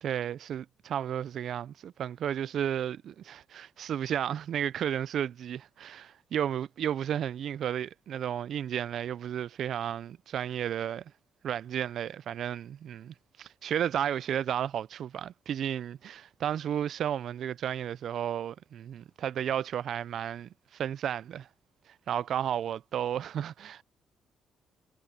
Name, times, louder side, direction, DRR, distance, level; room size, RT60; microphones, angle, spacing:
voice 1, 0.0-11.0 11.4-21.5 21.9-23.8, right 9 dB, 65° right, 0.3 m, -33 dB
cardioid pair, 90°, 0 cm